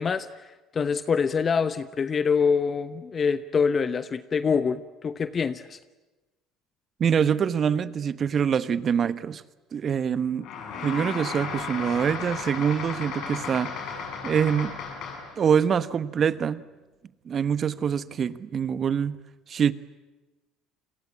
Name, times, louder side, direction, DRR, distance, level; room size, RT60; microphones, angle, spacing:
voice 1, 0.0-5.8, left 5 dB, 35° left, 0.9 m, -25 dB
voice 2, 7.0-9.4 9.7-10.4 10.8-13.7 14.2-14.7 15.4-16.6 17.3-19.2 19.5-19.7, right 7 dB, 45° right, 1.1 m, -25 dB
sound 1, 10.4-15.4, left 5 dB, 60° left, 7.0 m, -34 dB
28.5 x 22.0 x 8.6 m
hypercardioid pair, 70°, 0 cm